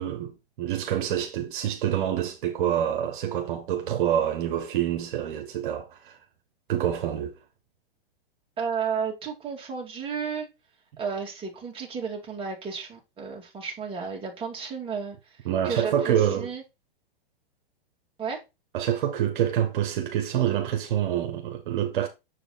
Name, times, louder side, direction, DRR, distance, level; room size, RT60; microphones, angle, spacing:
voice 1, 0.0-6.2 6.7-7.4 15.4-16.5 18.7-22.1, right 10 dB, 60° right, 1.4 m, -27 dB
voice 2, 8.6-10.5 11.0-15.2 15.6-16.6 18.2-18.4, right 6 dB, 20° right, 2.5 m, -32 dB
7.2 x 5.0 x 4.0 m
hypercardioid pair, 130°, 29 cm